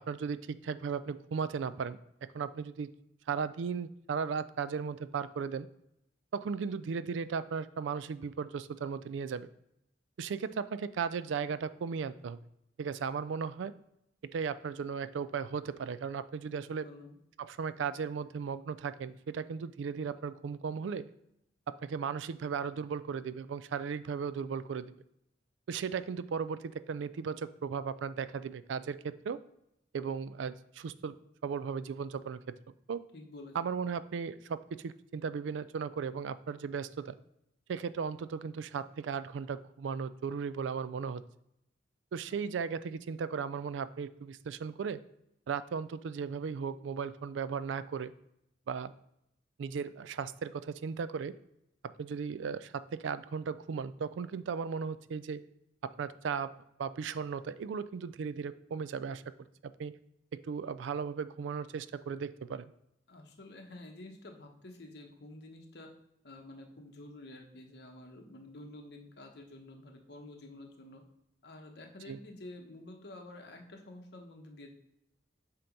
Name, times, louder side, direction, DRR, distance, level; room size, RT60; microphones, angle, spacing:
voice 1, 0.0-2.9 3.3-5.7 6.3-9.5 10.2-12.4 12.8-13.7 14.2-16.9 17.4-21.1 21.7-24.9 25.7-29.4 29.9-31.2 31.4-32.4 32.9-33.0 33.5-37.2 37.7-41.2 42.1-45.0 45.5-48.1 48.7-48.9 49.6-51.3 52.0-55.4 55.8-56.5 56.8-59.2 59.6-59.9 60.3-62.7 72.1-72.2, right 6 dB, 85° right, 15 dB, 0.3 m, -36 dB
voice 2, 16.5-17.2 33.1-33.6 42.3-42.4 63.1-65.9 66.2-71.0 71.4-74.7, left 2 dB, 60° left, 3 dB, 1.1 m, -50 dB
7.6 x 2.9 x 5.2 m, 0.80 s
head